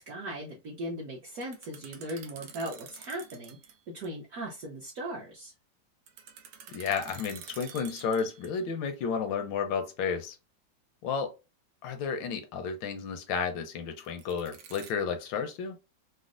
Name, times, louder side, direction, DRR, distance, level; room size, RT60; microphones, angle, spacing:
voice 1, 0.0-3.6 3.9-5.5, right 1 dB, 60° right, 1.0 m, -38 dB
sound 1, 1.3-3.8 4.0-4.1 6.1-8.7 14.1-14.9, right 7 dB, 75° right, 1.3 m, -48 dB
voice 2, 6.7-10.4 11.0-11.3 11.8-15.8, left 6 dB, 80° left, 1.3 m, -32 dB
4.1 x 2.1 x 2.4 m
omnidirectional pair, 2.1 m